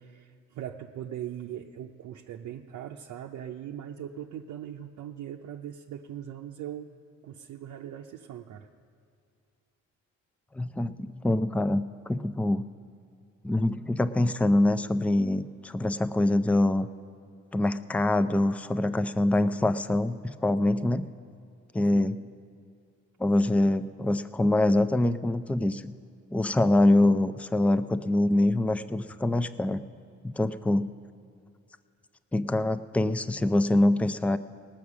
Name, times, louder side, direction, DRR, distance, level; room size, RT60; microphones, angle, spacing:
voice 1, 0.0-6.9 7.2-8.7 21.9-22.1, right 10 dB, 75° right, 0 dB, 0.7 m, -40 dB
voice 2, 10.5-12.6 13.4-16.9 17.5-21.1 21.7-22.2 23.2-25.9 26.3-29.8 30.2-30.9 32.3-34.4, left 1 dB, 5° left, 12 dB, 0.4 m, -24 dB
19.0 x 7.3 x 6.1 m, 2.4 s
cardioid pair, 90°, 30 cm